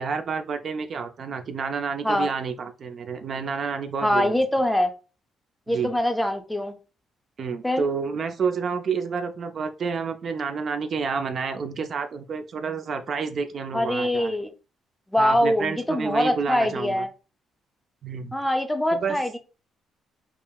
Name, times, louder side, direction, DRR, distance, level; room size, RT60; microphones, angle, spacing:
voice 1, 0.0-4.4 5.7-5.9 7.4-14.3 15.2-17.0 18.0-18.3 18.9-19.2, right 5 dB, 55° right, 7 dB, 0.3 m, -29 dB
voice 2, 4.0-4.9 5.7-6.7 7.6-7.8 13.7-14.5 15.1-17.1 18.3-19.4, left 1 dB, 5° left, 7 dB, 0.4 m, -23 dB
3.7 x 2.0 x 2.2 m, 0.33 s
cardioid pair, 90°, 0 cm